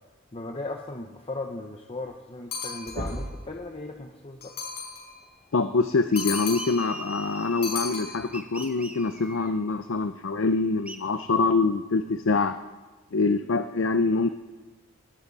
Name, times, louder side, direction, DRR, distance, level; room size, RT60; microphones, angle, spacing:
voice 1, 0.3-4.6, left 2 dB, 30° left, 3 dB, 0.9 m, -37 dB
sound 1, 2.4-2.6 2.8-3.5 5.2-5.3 7.2-7.3 8.2-8.3, equal, 65° right, 2.6 m, -35 dB
sound 2, 2.5-3.3 4.4-5.2 6.2-7.0 7.6-8.7, left 5 dB, 55° left, 5.2 m, -35 dB
voice 2, 5.5-12.6 13.1-14.3, left 3 dB, 70° left, 9 dB, 0.6 m, -25 dB
sound 3, 6.1-8.0 8.3-9.5 10.9-11.0, right 1 dB, 5° right, 1.1 m, -41 dB
19.0 x 18.0 x 4.1 m, 1.3 s
head